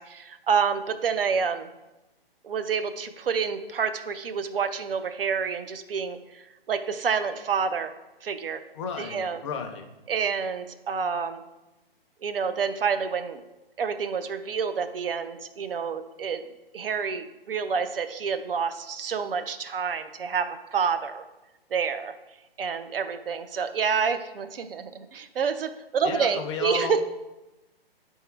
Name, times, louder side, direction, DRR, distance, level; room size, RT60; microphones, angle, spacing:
voice 1, 0.0-1.7 2.4-7.9 8.2-8.6 9.0-9.4 10.1-11.4 12.2-13.4 13.8-16.4 16.7-21.2 21.7-22.2 22.6-27.0, right 6 dB, 65° right, 9 dB, 0.7 m, -28 dB
voice 2, 8.7-9.9 26.0-27.0, left 6 dB, 30° left, 5 dB, 0.7 m, -33 dB
9.2 x 3.7 x 4.6 m, 1.0 s
hypercardioid pair, 145°, 30 cm